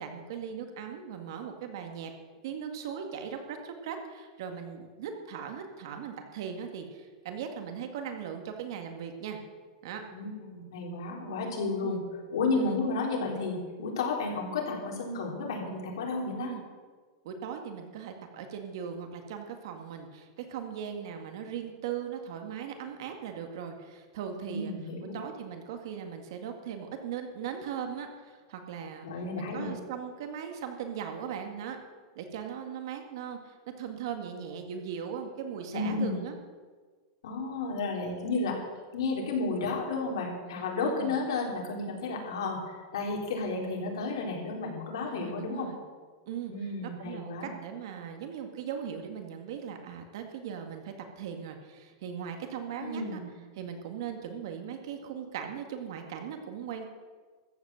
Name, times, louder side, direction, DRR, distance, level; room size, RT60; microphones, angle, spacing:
voice 1, 0.0-2.1 2.4-9.4 9.8-10.0 11.8-12.0 12.5-12.8 16.4-16.6 17.2-24.7 25.1-29.1 29.4-31.8 32.2-36.3 41.0-41.2 45.1-45.8 46.3-46.5 46.8-53.2 53.6-56.9, right 8 dB, 65° right, 5 dB, 2.0 m, -39 dB
voice 2, 10.1-12.0 12.3-16.5 24.5-25.2 29.0-29.7 35.7-36.2 37.2-38.6 38.9-45.7 46.5-47.5 52.8-53.3, left 3 dB, 85° left, 0 dB, 3.9 m, -32 dB
14.0 x 8.5 x 7.7 m, 1.5 s
supercardioid pair, 165°, 2 cm